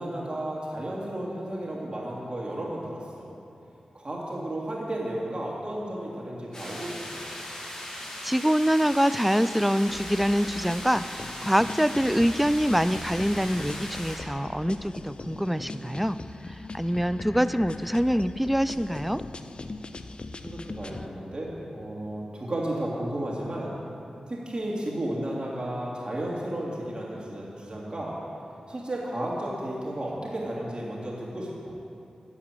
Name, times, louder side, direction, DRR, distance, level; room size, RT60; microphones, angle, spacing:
voice 1, 0.0-3.2 3.9-7.2 20.4-23.8 24.3-28.2 28.7-31.7, right 1 dB, 40° right, -4 dB, 3.5 m, -33 dB
sound 1, 6.5-14.2, left 1 dB, 30° left, 3.2 m, -38 dB
voice 2, 8.2-16.2 16.5-19.2, equal, 5° right, 14 dB, 0.4 m, -25 dB
sound 2, 9.9-21.1, left 3 dB, 45° left, 0.6 m, -40 dB
14.0 x 4.9 x 9.0 m, 2.6 s
cardioid pair, 40°, 2 cm